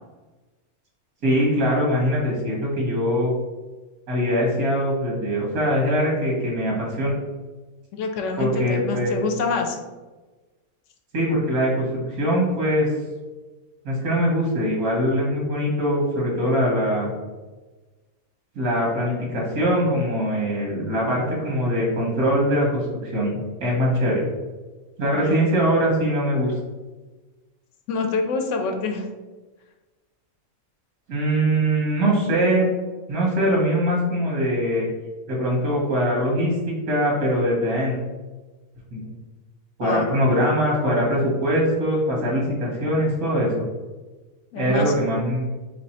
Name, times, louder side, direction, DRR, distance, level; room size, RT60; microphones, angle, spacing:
voice 1, 1.2-3.3 4.1-7.1 8.4-9.2 11.1-12.9 13.8-17.1 18.5-24.2 25.0-26.5 31.1-32.7 33.1-34.9 35.3-38.0 38.9-39.1 39.8-43.7 44.5-45.5, equal, 90° right, -3 dB, 1.5 m, -22 dB
voice 2, 7.9-9.8 25.1-25.4 27.9-29.1 39.8-40.1 44.5-44.9, left 4 dB, 70° left, 4 dB, 0.8 m, -26 dB
3.3 x 3.1 x 4.1 m, 1.2 s
omnidirectional pair, 1.5 m